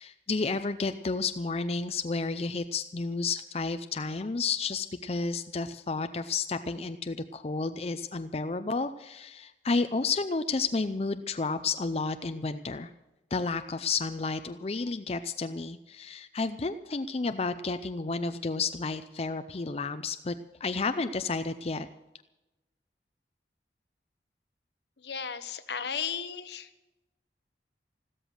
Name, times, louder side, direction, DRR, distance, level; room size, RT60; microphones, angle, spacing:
voice 1, 0.0-12.9 13.3-20.3 20.6-21.9, left 4 dB, 35° left, 9 dB, 0.5 m, -31 dB
voice 2, 25.0-26.7, left 7 dB, 75° left, 11 dB, 1.1 m, -35 dB
14.5 x 13.0 x 6.4 m, 1.0 s
head